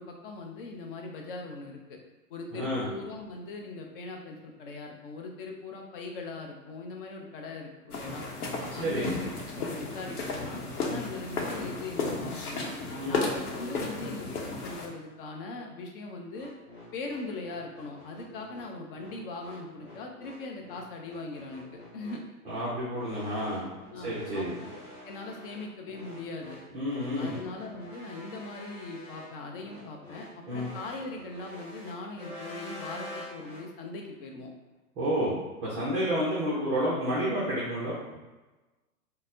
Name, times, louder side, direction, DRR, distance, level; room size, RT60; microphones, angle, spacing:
voice 1, 0.0-2.0 2.3-8.2 8.7-12.7 13.1-16.5 16.9-21.6 21.9-22.2 23.9-26.6 27.1-34.5, left 3 dB, 40° left, 1 dB, 0.6 m, -40 dB
voice 2, 2.5-2.8 8.7-9.1 10.8-11.0 13.0-13.2 22.5-23.7 24.0-24.5 26.7-27.3 30.5-30.7 35.0-35.3 35.6-38.0, equal, 15° right, -8 dB, 0.4 m, -30 dB
sound 1, 7.9-14.9, left 3 dB, 75° left, 0.8 m, -34 dB
sound 2, 16.3-33.6, equal, 20° left, 1.2 m, -47 dB
3.9 x 2.1 x 2.6 m, 1.2 s
hypercardioid pair, 120°, 45 cm